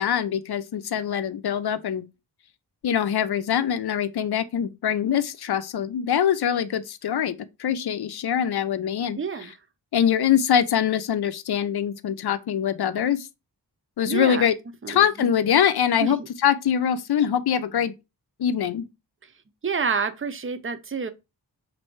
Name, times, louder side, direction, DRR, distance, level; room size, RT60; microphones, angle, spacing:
voice 1, 0.0-2.0 2.8-9.2 9.9-13.3 14.0-14.5 14.9-17.9 18.4-18.9, left 9 dB, 60° left, 0.6 m, -23 dB
voice 2, 9.2-9.5 14.1-14.5 14.8-15.3 16.0-16.3 19.6-21.1, right 5 dB, 30° right, 0.6 m, -28 dB
3.2 x 2.7 x 4.5 m
cardioid pair, 55°, 43 cm